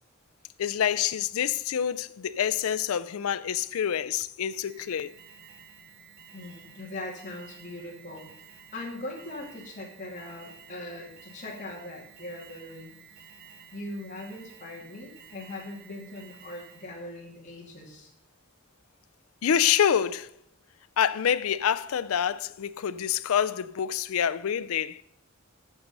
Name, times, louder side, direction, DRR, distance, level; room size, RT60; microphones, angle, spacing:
voice 1, 0.6-5.1 19.4-20.3 21.0-25.0, left 9 dB, 90° left, 0.4 m, -27 dB
Alarm, 4.7-17.1, right 7 dB, 45° right, 0.7 m, -52 dB
voice 2, 6.3-8.3 8.7-12.9 13.7-18.1, left 1 dB, 35° left, 2.4 m, -40 dB
8.9 x 6.6 x 5.3 m
head